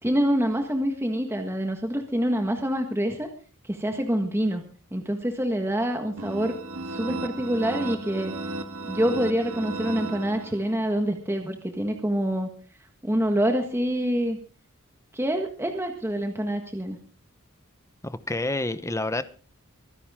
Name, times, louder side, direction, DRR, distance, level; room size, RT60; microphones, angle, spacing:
voice 1, 0.0-3.3 3.6-4.6 4.9-6.5 6.8-8.3 8.8-12.5 13.0-14.4 15.1-17.0, equal, 10° right, 4 dB, 1.6 m, -26 dB
sound 1, 6.2-10.9, right 2 dB, 90° right, 1.6 m, -34 dB
voice 2, 18.0-19.2, left 2 dB, 15° left, 12 dB, 0.9 m, -28 dB
24.0 x 10.5 x 3.7 m, 0.39 s
head